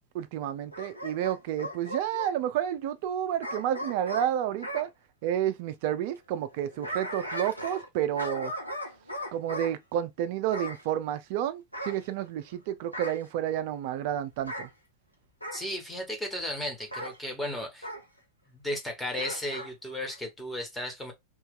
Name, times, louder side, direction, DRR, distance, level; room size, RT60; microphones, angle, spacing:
voice 1, 0.1-4.9 5.2-8.5 9.3-14.7, right 11 dB, 50° right, 0.4 m, -30 dB
Bark / Growling, 0.7-2.3 3.4-4.9 6.5-7.9 8.2-9.7 10.5-10.8 11.7-12.5 12.9-13.3 14.4-14.7 15.4-15.7 16.9-17.2 17.8-18.0 19.1-19.7 20.1-20.2, equal, 90° left, 0.9 m, -37 dB
voice 2, 15.5-17.9 18.5-21.1, left 1 dB, 5° left, 1.4 m, -35 dB
3.0 x 2.8 x 3.7 m
figure-of-eight pair, 90°, 0 cm